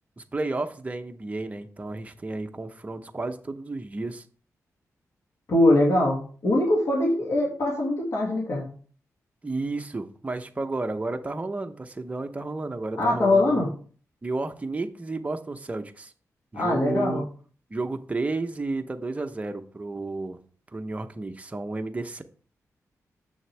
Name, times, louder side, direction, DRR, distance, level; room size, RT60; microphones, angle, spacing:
voice 1, 0.2-4.2 9.4-13.7 14.2-16.1 16.5-17.3 17.7-20.4 20.7-22.2, right 3 dB, 25° right, 6 dB, 0.7 m, -32 dB
voice 2, 5.5-8.7 13.0-13.7 16.5-17.2, left 1 dB, 60° left, -3 dB, 1.9 m, -22 dB
7.0 x 6.3 x 3.3 m, 0.42 s
cardioid pair, 95°, 6 cm